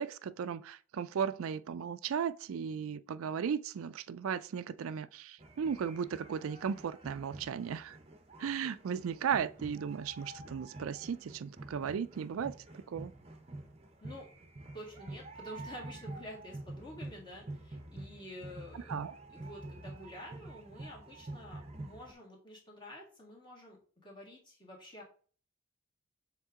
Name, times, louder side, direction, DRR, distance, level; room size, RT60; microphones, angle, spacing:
voice 1, 0.0-8.0 8.4-13.1 18.7-19.1, right 7 dB, 85° right, 0.4 m, -36 dB
sound 1, 5.4-22.1, right 2 dB, 30° right, 0.7 m, -48 dB
voice 2, 14.7-19.0 19.3-25.0, left 1 dB, 20° left, 2.0 m, -49 dB
7.2 x 3.7 x 3.6 m
head